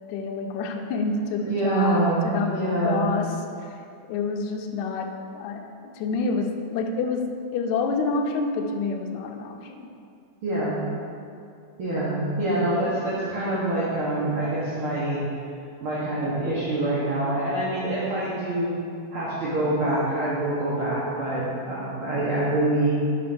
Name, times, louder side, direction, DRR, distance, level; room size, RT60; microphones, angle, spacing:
voice 1, 0.1-3.4 3.6-3.8 4.1-9.9, left 4 dB, 80° left, 3 dB, 1.9 m, -28 dB
voice 2, 1.5-2.2 2.6-3.1 10.4-10.8 11.8-15.2 15.8-18.7 19.1-23.0, right 1 dB, 55° right, -9 dB, 1.7 m, -25 dB
7.2 x 3.9 x 5.2 m, 2.4 s
omnidirectional pair, 3.5 m